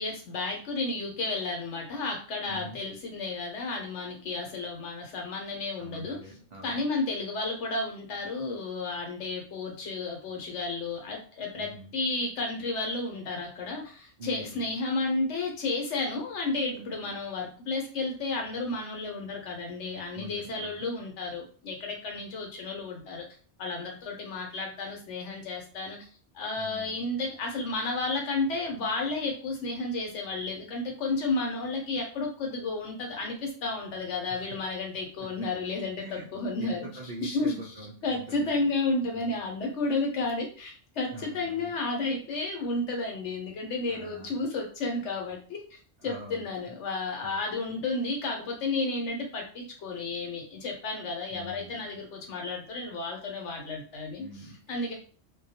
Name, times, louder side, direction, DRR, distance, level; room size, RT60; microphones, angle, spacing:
voice 1, 0.0-6.2 6.6-23.2 23.6-26.1 26.3-36.9 37.2-37.7 38.0-54.9, left 3 dB, 75° left, 1 dB, 1.0 m, -32 dB
voice 2, 2.5-2.8 5.8-6.9 11.5-11.9 14.2-14.7 20.1-20.9 26.6-27.0 34.3-34.4 36.0-36.3 36.6-38.5 39.1-39.3 41.1-41.7 43.9-44.3 46.0-46.5 47.2-47.4 47.7-47.8 51.3-52.0 54.2-54.9, right 1 dB, 60° right, -4 dB, 0.4 m, -44 dB
2.2 x 2.2 x 2.7 m, 0.41 s
omnidirectional pair, 1.2 m